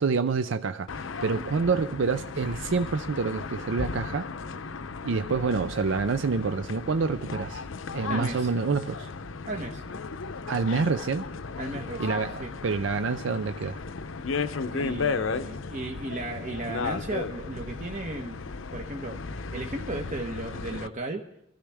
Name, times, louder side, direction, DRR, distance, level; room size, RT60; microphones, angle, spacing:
voice 1, 0.0-4.3 5.0-7.6 7.9-9.1 10.5-11.3 12.0-13.8, right 4 dB, 70° right, 10 dB, 0.5 m, -27 dB
sound 1, 0.9-20.9, left 4 dB, 90° left, 0.7 m, -35 dB
voice 2, 8.1-8.5 9.5-9.8 11.6-12.5 14.7-18.4 18.7-21.2, right 2 dB, 40° right, 3 dB, 1.1 m, -35 dB
23.5 x 13.0 x 3.5 m, 0.82 s
head